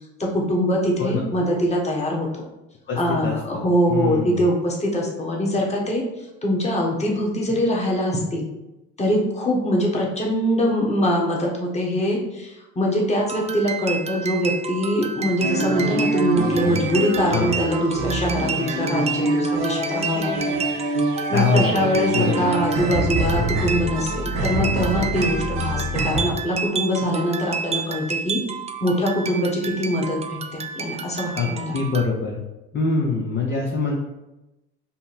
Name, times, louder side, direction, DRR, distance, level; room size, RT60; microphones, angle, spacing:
voice 1, 0.2-2.5 3.0-8.5 9.0-20.5 21.3-28.4 28.8-31.8, equal, 20° left, -2 dB, 1.4 m, -23 dB
voice 2, 1.0-1.3 2.9-4.5 17.3-17.5 21.3-22.5 31.3-32.4 32.7-34.0, left 4 dB, 40° left, -3 dB, 0.8 m, -24 dB
sound 1, 13.2-32.1, right 6 dB, 20° right, 0.4 m, -31 dB
sound 2, 15.4-26.2, right 2 dB, 80° right, 1.1 m, -25 dB
5.4 x 2.1 x 4.3 m, 0.97 s
supercardioid pair, 80°, 29 cm